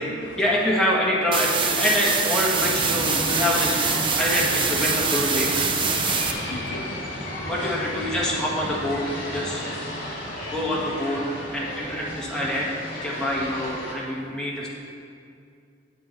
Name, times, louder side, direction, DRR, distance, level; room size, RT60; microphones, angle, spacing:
voice 1, 0.4-5.5 7.2-9.7 9.9-10.0 10.4-11.2 11.5-14.7, left 1 dB, 5° left, -5 dB, 1.4 m, -26 dB
sound 1, 1.3-6.3, right 5 dB, 30° right, 0.6 m, -24 dB
sound 2, 2.6-13.9, left 1 dB, 55° left, 2.1 m, -33 dB
voice 2, 5.9-7.7 9.5-10.3, left 2 dB, 70° left, 3 dB, 0.6 m, -41 dB
7.9 x 7.9 x 4.3 m, 2.4 s
head